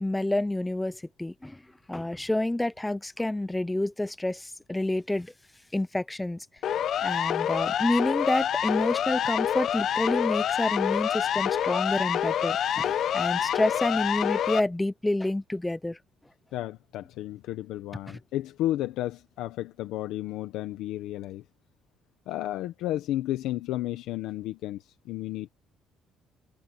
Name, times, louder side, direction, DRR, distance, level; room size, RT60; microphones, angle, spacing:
voice 1, 0.0-1.6 1.9-5.3 5.7-6.5 7.0-16.0 18.1-18.2, left 1 dB, 5° left, 0.8 m, -28 dB
Siren, 6.6-14.6, left 10 dB, 55° left, 0.9 m, -27 dB
voice 2, 16.5-21.4 22.3-25.5, left 14 dB, 80° left, 1.2 m, -32 dB
cardioid pair, 140°, 0 cm